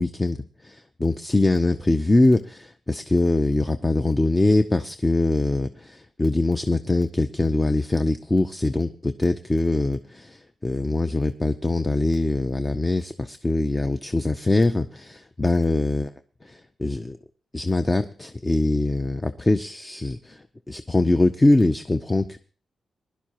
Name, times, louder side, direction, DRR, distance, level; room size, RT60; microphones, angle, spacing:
voice 1, 0.0-16.1 16.4-17.2 17.5-22.4, left 2 dB, 15° left, 9 dB, 0.5 m, -23 dB
20.5 x 11.5 x 2.9 m, 0.40 s
wide cardioid pair, 145°, 0 cm